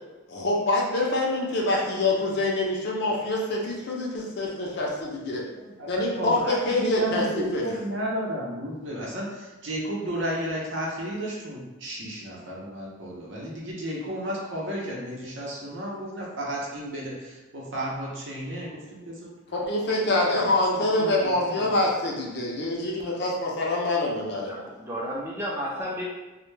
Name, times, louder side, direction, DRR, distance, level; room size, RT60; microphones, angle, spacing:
voice 1, 0.3-5.4 5.9-7.7 19.5-24.5, left 2 dB, 50° left, -2 dB, 0.5 m, -25 dB
voice 2, 5.6-19.3 20.4-21.8, right 1 dB, 60° right, -4 dB, 0.6 m, -33 dB
voice 3, 24.4-26.0, equal, 10° right, -4 dB, 0.4 m, -33 dB
2.1 x 2.1 x 3.1 m, 1.1 s
head